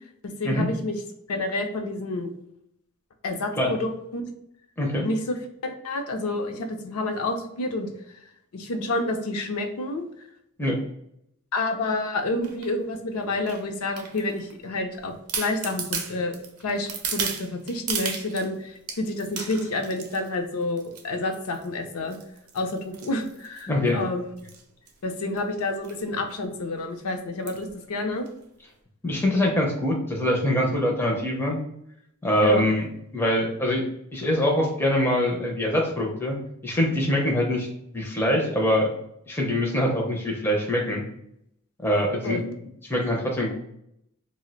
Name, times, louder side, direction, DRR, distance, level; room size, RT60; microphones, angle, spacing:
voice 1, 0.2-1.0 1.3-2.3 3.2-4.3 5.0-5.4 5.6-8.2 8.5-10.0 11.5-22.2 22.5-24.3 25.0-28.3 32.4-32.6 42.2-42.4, left 2 dB, 70° left, 5 dB, 0.5 m, -29 dB
sound 1, 12.4-12.7 13.5-14.5 14.9-15.0 15.3-18.5 18.9-20.3 20.8-21.0 21.3-21.7 22.1-23.9 24.4-24.6 24.9-25.0 25.2-25.4 25.8-26.0 26.4-26.5 27.5-27.7 28.3-28.4, right 6 dB, 75° right, 0.5 m, -34 dB
voice 2, 23.7-24.0 29.0-31.6 32.2-32.8 33.1-33.8 34.1-36.4 36.6-37.7 37.9-38.9 39.3-41.0 41.8-42.4 42.8-43.5, left 1 dB, 10° left, -2 dB, 0.4 m, -23 dB
2.4 x 2.0 x 3.9 m, 0.76 s
head